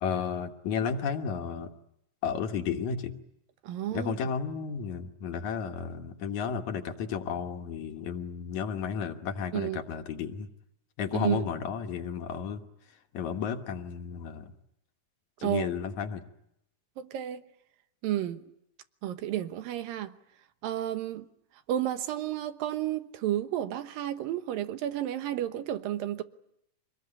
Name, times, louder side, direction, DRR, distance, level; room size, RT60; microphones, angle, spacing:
voice 1, 0.0-1.7 2.2-3.1 3.9-10.5 11.0-12.6 13.1-14.5 15.4-16.2, left 7 dB, 65° left, 2.4 m, -33 dB
voice 2, 3.6-4.1 9.5-9.8 11.1-11.5 15.4-15.7 17.0-17.4 18.0-18.4 19.0-20.1 20.6-21.3 21.7-26.2, right 12 dB, 85° right, 2.9 m, -31 dB
26.0 x 20.5 x 9.8 m
omnidirectional pair, 3.9 m